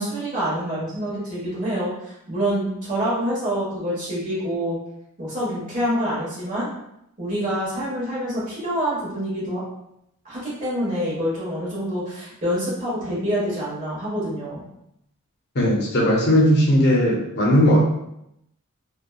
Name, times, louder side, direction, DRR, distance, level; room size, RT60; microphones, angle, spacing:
voice 1, 0.0-4.8 5.2-6.7 7.2-9.6 10.2-14.6, equal, 35° right, -7 dB, 1.1 m, -26 dB
voice 2, 15.5-17.8, equal, 50° left, -3 dB, 0.6 m, -17 dB
2.7 x 2.2 x 2.2 m, 0.80 s
head